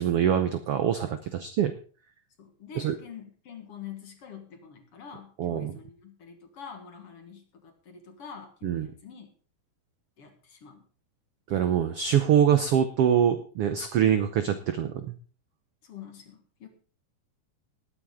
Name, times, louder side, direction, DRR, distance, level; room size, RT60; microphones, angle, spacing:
voice 1, 0.0-1.7 2.7-2.9 5.4-5.8 8.6-8.9 11.5-15.1, right 9 dB, 75° right, 9 dB, 1.3 m, -24 dB
voice 2, 2.4-9.3 10.2-10.8 15.8-16.7, left 7 dB, 50° left, 5 dB, 2.2 m, -46 dB
19.5 x 9.2 x 3.7 m, 0.40 s
omnidirectional pair, 3.7 m